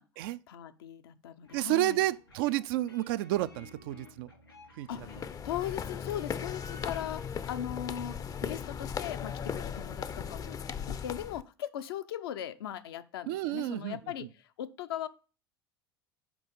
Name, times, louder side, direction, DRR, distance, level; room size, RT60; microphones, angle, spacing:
voice 1, 0.5-2.0 4.9-10.6 10.9-15.1, left 11 dB, 70° left, 0.6 m, -39 dB
sound 1, 1.4-7.4, left 2 dB, 90° left, 3.6 m, -55 dB
voice 2, 1.5-4.3 4.8-4.9 13.3-14.0, right 15 dB, 65° right, 0.4 m, -30 dB
sound 2, 4.9-11.4, left 7 dB, 30° left, 0.5 m, -37 dB
6.1 x 4.8 x 5.4 m
figure-of-eight pair, 70°, 13 cm